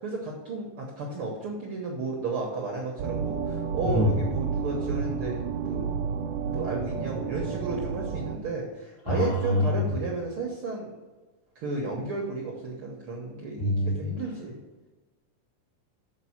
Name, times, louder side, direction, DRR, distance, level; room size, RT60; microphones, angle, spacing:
voice 1, 0.0-5.9 6.5-10.9 11.5-14.6, right 3 dB, 65° right, -1 dB, 1.4 m, -33 dB
sound 1, 3.0-8.4, right 6 dB, 85° right, 2.3 m, -31 dB
voice 2, 9.1-9.7 13.6-13.9, left 1 dB, 55° left, -6 dB, 4.0 m, -25 dB
7.4 x 5.1 x 5.7 m, 1.2 s
omnidirectional pair, 3.8 m